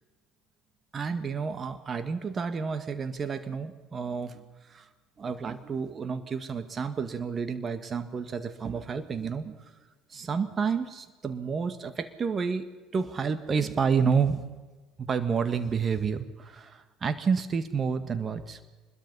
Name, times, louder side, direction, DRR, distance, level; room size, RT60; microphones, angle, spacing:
voice 1, 0.9-4.4 4.7-4.9 5.2-9.6 10.1-14.4 15.0-18.6, right 5 dB, 30° right, 10 dB, 1.8 m, -30 dB
24.5 x 21.5 x 5.6 m, 1.3 s
figure-of-eight pair, 65°, 0 cm